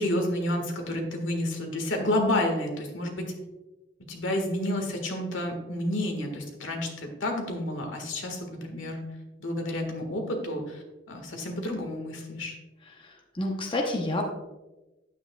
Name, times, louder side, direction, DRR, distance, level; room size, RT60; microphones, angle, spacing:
voice 1, 0.0-3.3 4.0-9.1 9.4-12.6, left 1 dB, 75° left, 3 dB, 1.6 m, -30 dB
voice 2, 13.0-14.2, left 1 dB, 25° left, 1 dB, 0.8 m, -29 dB
9.6 x 8.6 x 2.3 m, 1.1 s
head